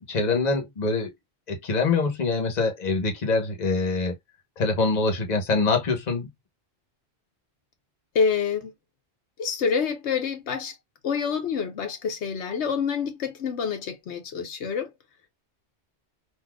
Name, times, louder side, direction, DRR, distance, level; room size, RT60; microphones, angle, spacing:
voice 1, 0.1-1.1 1.5-4.1 4.6-6.3, left 3 dB, 40° left, 1.0 m, -24 dB
voice 2, 8.1-8.7 9.4-10.8 11.0-14.9, left 6 dB, 80° left, 1.0 m, -27 dB
3.9 x 2.6 x 2.2 m
omnidirectional pair, 1.1 m